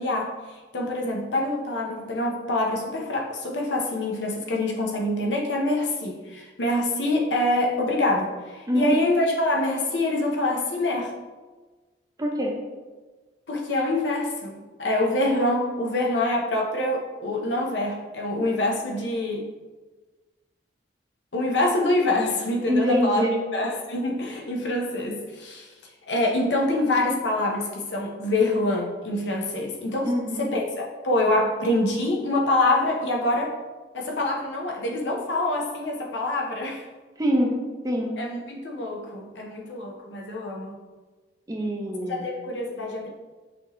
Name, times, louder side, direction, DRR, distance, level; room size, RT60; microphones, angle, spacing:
voice 1, 0.0-11.1 13.5-19.5 21.3-23.2 23.5-25.7 26.1-30.1 30.4-33.6 33.9-36.9 38.2-40.8 42.1-43.1, left 1 dB, 85° left, 0 dB, 0.8 m, -25 dB
voice 2, 12.2-12.5 22.7-23.4 30.0-30.4 37.2-37.5 37.8-38.1 41.5-42.2, equal, 20° right, 1 dB, 0.6 m, -24 dB
6.0 x 2.8 x 3.0 m, 1.3 s
head